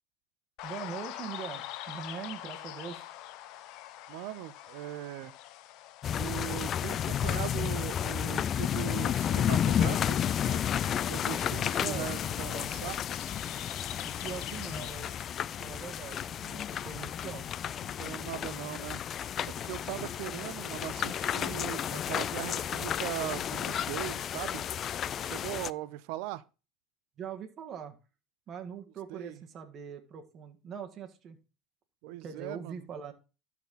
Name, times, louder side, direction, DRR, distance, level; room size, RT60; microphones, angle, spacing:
sound 1, 0.6-15.2, left 14 dB, 65° left, 0.7 m, -46 dB
voice 1, 0.6-3.1 11.8-12.1 14.0-15.1 15.6-17.5 19.9-20.1 27.2-28.0 28.5-31.4 32.2-33.1, right 7 dB, 40° right, 1.7 m, -42 dB
voice 2, 4.1-5.3 6.2-10.8 11.1-13.0 17.8-19.0 19.4-24.6 25.1-26.4 29.1-29.4 32.0-32.9, right 15 dB, 70° right, 0.6 m, -40 dB
sound 2, 6.0-25.7, left 9 dB, 40° left, 0.3 m, -32 dB
12.5 x 4.3 x 4.0 m
supercardioid pair, 115°, 0 cm